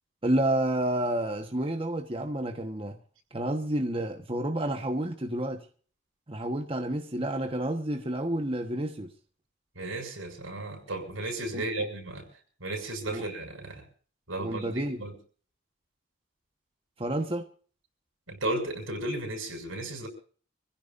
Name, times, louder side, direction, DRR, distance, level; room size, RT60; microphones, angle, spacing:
voice 1, 0.2-3.0 3.3-5.7 6.3-9.1 11.5-11.9 13.1-13.2 14.4-15.0 17.0-17.5, right 1 dB, 25° right, 1.2 m, -30 dB
voice 2, 9.7-12.3 12.6-13.8 14.3-15.1 18.3-20.1, right 1 dB, 85° right, 6.6 m, -34 dB
26.0 x 16.0 x 2.6 m
head